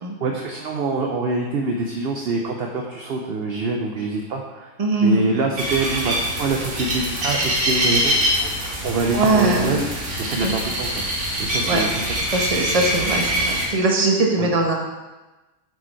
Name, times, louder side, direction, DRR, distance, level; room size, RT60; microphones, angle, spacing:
voice 1, 0.2-4.7 5.0-9.8 10.2-11.1 11.4-12.7 14.4-14.5, right 3 dB, 55° right, 1 dB, 0.8 m, -25 dB
voice 2, 4.8-5.2 9.1-9.8 10.4-10.5 11.6-11.8 12.3-14.7, right 2 dB, 30° right, 0 dB, 1.1 m, -20 dB
sound 1, 5.6-13.7, equal, 90° right, 1.9 m, -24 dB
7.6 x 5.0 x 4.5 m, 1.1 s
omnidirectional pair, 1.4 m